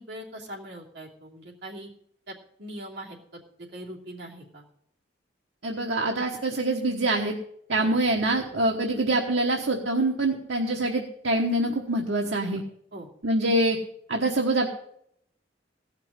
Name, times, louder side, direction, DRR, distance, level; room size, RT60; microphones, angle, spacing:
voice 1, 0.0-1.9 2.3-3.4 3.7-4.6 7.8-8.0 12.9-13.1, right 1 dB, 70° right, -2 dB, 2.8 m, -41 dB
voice 2, 5.6-7.3 7.7-12.6 13.2-13.8 14.1-14.7, right 2 dB, 85° right, 0 dB, 1.3 m, -25 dB
15.5 x 5.9 x 7.3 m, 0.71 s
head